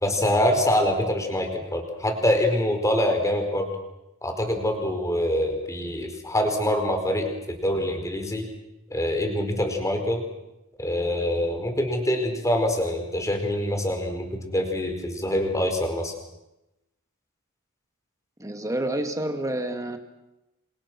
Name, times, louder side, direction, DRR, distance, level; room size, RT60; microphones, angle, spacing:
voice 1, 0.0-3.7 4.2-8.5 8.9-10.2 10.8-16.1, left 1 dB, 15° left, 4 dB, 4.7 m, -25 dB
voice 2, 18.4-20.0, right 1 dB, 15° right, 5 dB, 2.3 m, -28 dB
28.0 x 26.5 x 6.2 m, 0.93 s
head